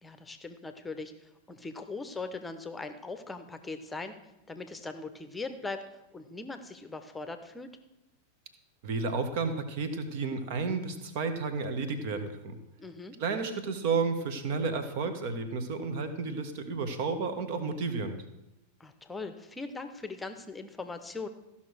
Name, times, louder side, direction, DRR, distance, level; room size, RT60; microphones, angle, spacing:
voice 1, 0.0-4.2 4.5-5.8 6.1-7.7 12.8-13.2 18.8-21.3, left 3 dB, 10° left, 9 dB, 0.9 m, -40 dB
voice 2, 8.8-12.5 13.2-18.2, right 4 dB, 50° right, 9 dB, 1.3 m, -32 dB
14.5 x 5.8 x 6.3 m, 0.92 s
figure-of-eight pair, 90°, 0 cm